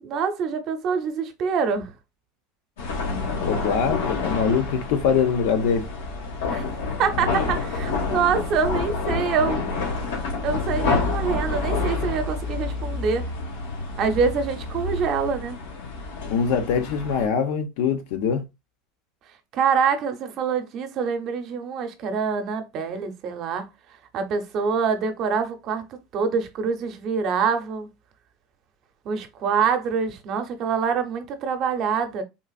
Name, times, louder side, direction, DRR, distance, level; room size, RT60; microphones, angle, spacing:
voice 1, 0.0-1.9 6.5-6.6 7.0-9.6 10.4-13.3 14.0-15.6 19.5-23.7 24.1-25.9 26.1-27.9 29.0-32.2, right 6 dB, 50° right, 0.7 m, -25 dB
sound 1, 2.8-17.3, left 3 dB, 90° left, 1.4 m, -28 dB
voice 2, 3.4-5.9 16.3-18.4, left 6 dB, 70° left, 0.7 m, -23 dB
3.8 x 2.4 x 2.3 m
supercardioid pair, 115°, 0 cm